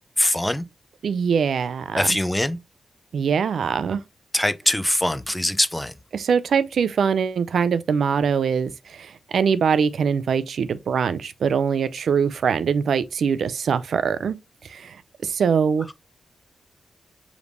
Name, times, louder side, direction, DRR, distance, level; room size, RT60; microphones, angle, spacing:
voice 1, 0.2-0.7 1.9-2.6 4.3-5.9 15.9-16.0, left 1 dB, 10° left, 0.4 m, -22 dB
voice 2, 1.0-2.1 3.1-4.0 6.1-14.4 14.7-15.0 15.2-15.9, right 6 dB, 75° right, 0.4 m, -22 dB
4.9 x 3.3 x 2.5 m
cardioid pair, 90°, 0 cm